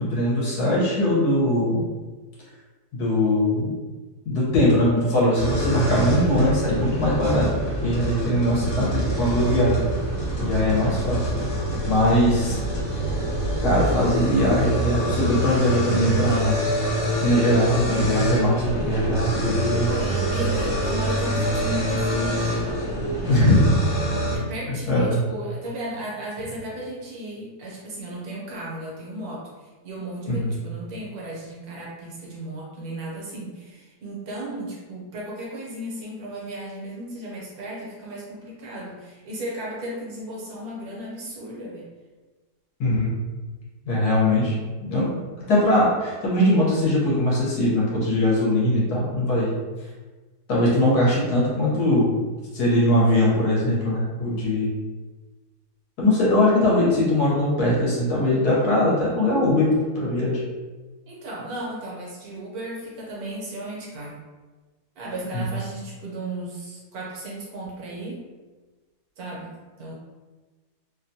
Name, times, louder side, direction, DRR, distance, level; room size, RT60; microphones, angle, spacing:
voice 1, 0.0-1.8 2.9-3.7 4.2-7.5 7.8-9.8 10.4-11.3 11.8-12.6 13.6-16.6 17.2-19.9 23.3-23.8 24.7-25.2 30.3-30.5 42.8-43.1 43.8-49.5 50.5-52.2 52.5-54.7 56.0-59.7 59.9-60.4 65.3-65.4, left 1 dB, 70° left, -6 dB, 1.5 m, -21 dB
sound 1, 5.4-24.4, right 1 dB, 45° left, 0.4 m, -25 dB
voice 2, 19.9-22.7 24.3-41.9 61.1-64.2 65.0-68.2 69.2-69.9, right 1 dB, 70° right, -3 dB, 1.2 m, -35 dB
3.2 x 2.2 x 2.7 m, 1.3 s
omnidirectional pair, 1.7 m